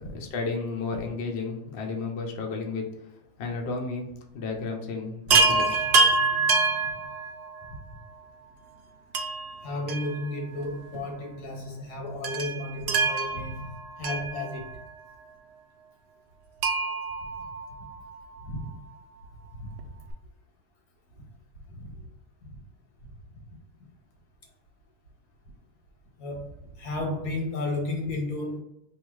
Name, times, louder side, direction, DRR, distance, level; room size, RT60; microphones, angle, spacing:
voice 1, 0.1-2.9 3.4-6.2, left 4 dB, 55° left, 1 dB, 0.8 m, -33 dB
Chime, 5.3-7.7 9.1-10.7 10.9-11.0 12.2-14.9 16.6-18.2 19.8-19.9 20.1-20.2, right 3 dB, 90° right, 0.5 m, -26 dB
voice 2, 9.6-13.7 14.0-14.8 18.4-18.7 19.5-19.9 21.7-22.1 22.4-22.6 26.2-28.6, left 2 dB, 80° left, 1 dB, 1.6 m, -33 dB
3.6 x 2.6 x 4.7 m, 0.80 s
omnidirectional pair, 1.7 m